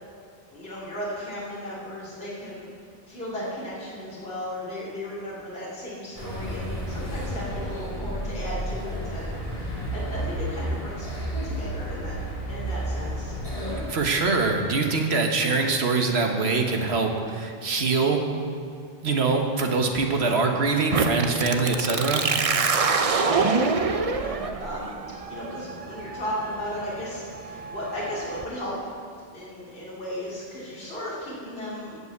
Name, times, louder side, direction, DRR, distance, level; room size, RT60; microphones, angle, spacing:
voice 1, 0.5-2.7 3.1-12.2 12.5-13.4 20.1-20.4 22.7-28.7 29.3-32.0, equal, 70° left, -8 dB, 2.8 m, -35 dB
sound 1, 6.1-13.9, equal, 35° left, 2.4 m, -31 dB
voice 2, 13.9-18.2 19.0-22.2, right 4 dB, 85° right, 3 dB, 1.5 m, -23 dB
sound 2, 20.9-28.4, right 4 dB, 40° right, 0.6 m, -26 dB
15.0 x 5.5 x 8.1 m, 2.2 s
omnidirectional pair, 1.0 m